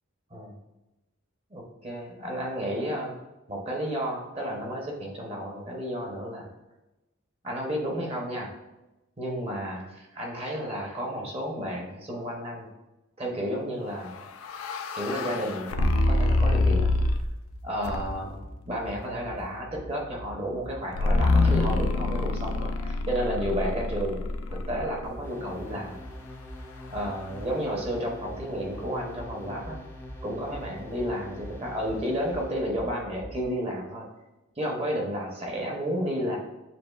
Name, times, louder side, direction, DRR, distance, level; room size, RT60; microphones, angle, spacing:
voice 1, 1.5-3.2 3.5-6.5 7.4-8.5 9.2-12.7 13.2-14.3 14.9-16.9 17.6-26.0 26.9-29.8 30.2-34.1 34.6-36.4, equal, 30° right, -1 dB, 0.7 m, -32 dB
sound 1, 14.1-17.4 17.8-18.4 21.0-25.1, left 2 dB, 85° left, 0.4 m, -26 dB
sound 2, 16.0-33.4, left 1 dB, 70° right, 0.5 m, -45 dB
sound 3, 25.2-32.8, left 1 dB, 10° left, 0.5 m, -46 dB
6.7 x 2.4 x 2.3 m, 0.99 s
head